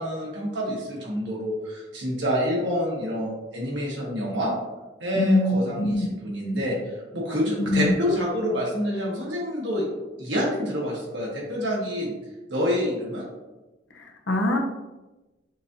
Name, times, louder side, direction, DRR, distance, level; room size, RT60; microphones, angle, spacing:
voice 1, 0.0-4.5 5.0-6.8 7.1-9.8 10.2-12.1 12.5-13.3, equal, 70° right, -3 dB, 1.4 m, -27 dB
voice 2, 5.1-6.1 7.6-7.9 14.0-14.6, left 1 dB, 80° left, 1 dB, 0.7 m, -23 dB
6.2 x 2.8 x 2.7 m, 1.1 s
head